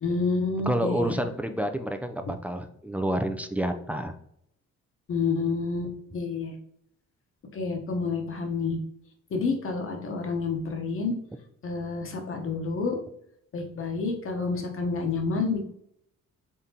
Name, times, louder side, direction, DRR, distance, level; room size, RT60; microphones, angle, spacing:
voice 1, 0.0-1.2 5.1-6.5 7.5-8.8 9.3-11.1 11.6-13.0 13.5-15.6, left 4 dB, 45° left, 3 dB, 0.9 m, -29 dB
voice 2, 0.7-4.2, right 1 dB, 5° right, 6 dB, 0.3 m, -29 dB
3.7 x 3.5 x 2.8 m, 0.71 s
cardioid pair, 90°, 30 cm